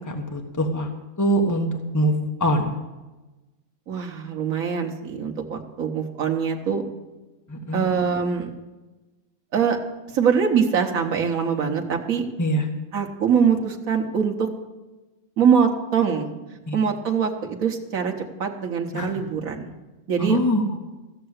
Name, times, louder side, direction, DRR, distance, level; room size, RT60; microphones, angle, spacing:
voice 1, 0.1-0.9 1.2-1.7 1.9-2.7 7.5-7.9 12.4-12.6 16.7-16.8 18.9-19.1 20.2-20.6, equal, 15° left, 2 dB, 1.3 m, -23 dB
voice 2, 3.9-6.8 7.7-8.5 9.5-9.8 10.1-12.3 12.9-14.5 15.4-16.3 16.7-19.7 20.1-20.4, right 6 dB, 75° right, 2 dB, 1.6 m, -23 dB
15.0 x 6.7 x 8.1 m, 1.1 s
omnidirectional pair, 1.5 m